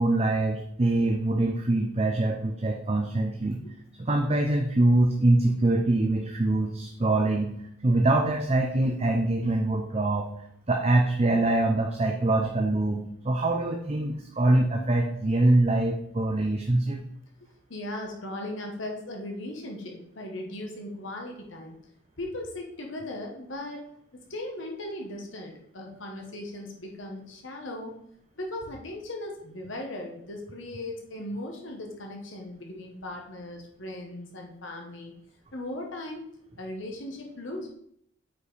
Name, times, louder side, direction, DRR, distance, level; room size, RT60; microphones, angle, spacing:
voice 1, 0.0-3.6 4.0-7.5 7.8-10.3 10.7-17.0, right 2 dB, 30° right, 3 dB, 0.6 m, -24 dB
voice 2, 17.7-21.8 22.2-23.8 24.1-27.9 28.4-35.1 35.5-36.2 36.6-37.7, left 1 dB, 65° left, 1 dB, 1.3 m, -38 dB
8.3 x 4.9 x 4.1 m, 0.71 s
head